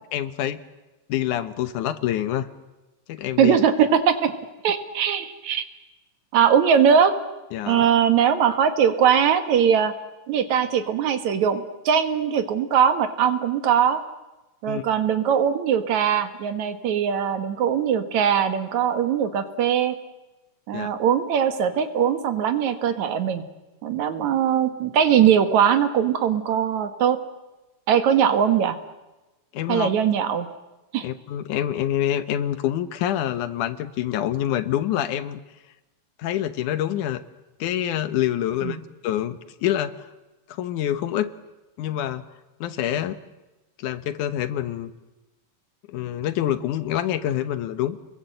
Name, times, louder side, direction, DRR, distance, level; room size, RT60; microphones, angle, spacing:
voice 1, 0.1-0.6 1.1-2.5 3.1-3.6 7.5-7.9 14.7-14.8 20.7-20.9 29.5-29.9 31.0-35.4 36.2-37.2 37.6-38.8 39.0-39.9 40.5-41.3 41.8-42.2 42.6-43.2 43.8-44.9 45.9-48.0, left 11 dB, 75° left, 12 dB, 2.4 m, -26 dB
voice 2, 3.4-4.3 4.6-5.6 6.3-7.1 7.7-9.9 10.3-14.0 14.6-19.9 20.7-23.4 23.8-27.2 27.9-28.8 29.7-30.5 30.9-31.1 38.6-38.8, right 8 dB, 65° right, 9 dB, 2.6 m, -21 dB
29.5 x 22.0 x 7.9 m, 1.1 s
omnidirectional pair, 3.7 m